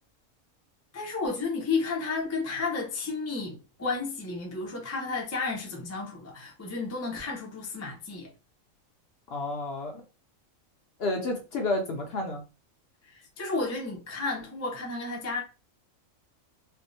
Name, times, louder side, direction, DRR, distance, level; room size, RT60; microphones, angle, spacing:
voice 1, 0.9-8.3 13.1-15.4, left 3 dB, 20° left, 0.4 m, -32 dB
voice 2, 9.3-10.0 11.0-12.4, left 2 dB, 60° left, 0.7 m, -30 dB
3.4 x 2.1 x 2.5 m
omnidirectional pair, 1.4 m